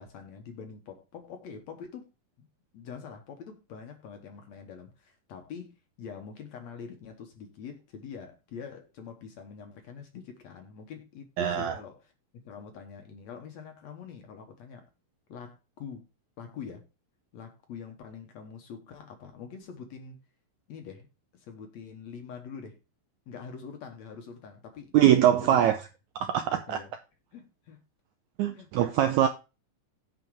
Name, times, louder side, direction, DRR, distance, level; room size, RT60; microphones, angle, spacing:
voice 1, 0.0-2.1 2.4-2.5 2.7-12.1 12.4-14.9 15.3-16.1 16.4-16.8 17.3-20.2 20.7-21.1 21.3-22.8 23.3-24.9 25.4-25.7 26.7-26.9 27.3-27.8 28.5-28.7, left 6 dB, 60° left, 2.1 m, -44 dB
voice 2, 11.4-11.7 24.9-25.8 26.2-26.8 28.4-29.3, right 11 dB, 85° right, 1.7 m, -22 dB
9.1 x 4.9 x 4.7 m
omnidirectional pair, 4.0 m